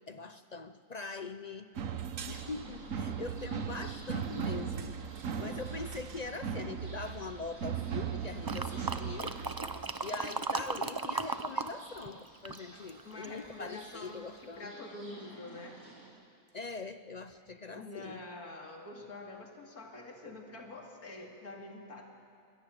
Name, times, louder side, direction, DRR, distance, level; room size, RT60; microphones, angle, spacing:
voice 1, 0.1-1.7 2.3-5.0 5.4-9.4 10.0-14.7 16.5-18.3, left 4 dB, 55° left, 10 dB, 0.4 m, -42 dB
sound 1, 1.8-9.9, right 7 dB, 65° right, 1.3 m, -38 dB
sound 2, 2.3-16.1, right 2 dB, 80° right, 6.2 m, -54 dB
sound 3, 8.4-11.7 12.0-13.4 13.9-14.0, right 3 dB, 30° right, 0.4 m, -36 dB
voice 2, 12.7-15.8 17.7-22.0, left 2 dB, 80° left, 1 dB, 2.8 m, -46 dB
24.5 x 17.5 x 8.9 m, 2.3 s
omnidirectional pair, 1.6 m